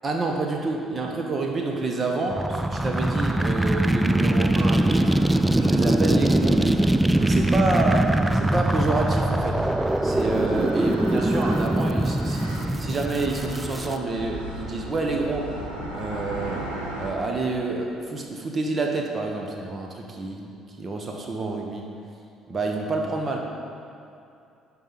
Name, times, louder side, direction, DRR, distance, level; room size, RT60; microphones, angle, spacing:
voice 1, 0.0-5.1 5.6-9.6 10.0-12.5 12.8-15.5 15.9-16.7 17.0-21.9 22.5-23.4, right 3 dB, 35° right, 1 dB, 1.1 m, -28 dB
sound 1, 2.2-17.1, right 1 dB, 85° right, 1.2 m, -37 dB
sound 2, 2.3-13.9, right 1 dB, 10° right, 0.3 m, -22 dB
10.5 x 4.0 x 5.8 m, 2.7 s
figure-of-eight pair, 50°, 0 cm